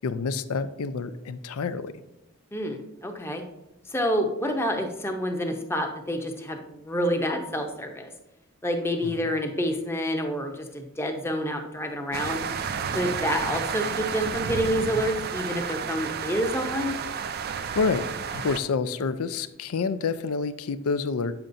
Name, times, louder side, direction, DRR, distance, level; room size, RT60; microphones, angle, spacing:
voice 1, 0.0-1.9 9.0-9.3 17.7-18.0 18.3-21.3, left 4 dB, 90° left, 13 dB, 0.4 m, -28 dB
voice 2, 2.5-3.4 3.9-8.1 8.6-12.4 12.9-17.0, equal, 10° left, 4 dB, 0.7 m, -28 dB
sound 1, 12.1-18.6, right 6 dB, 45° right, 0.4 m, -31 dB
8.8 x 7.0 x 2.6 m, 0.89 s
head